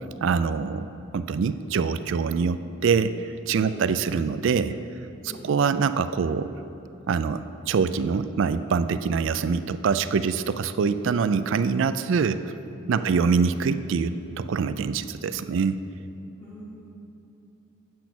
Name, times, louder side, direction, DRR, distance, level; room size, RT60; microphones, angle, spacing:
voice 1, 0.2-4.8 5.2-6.5 7.1-12.5 12.9-15.8, right 5 dB, 65° right, 12 dB, 0.3 m, -24 dB
voice 2, 3.6-4.1 5.2-5.5 12.9-13.2 16.4-16.9, equal, 30° left, -11 dB, 2.0 m, -42 dB
8.4 x 6.2 x 5.9 m, 3.0 s
head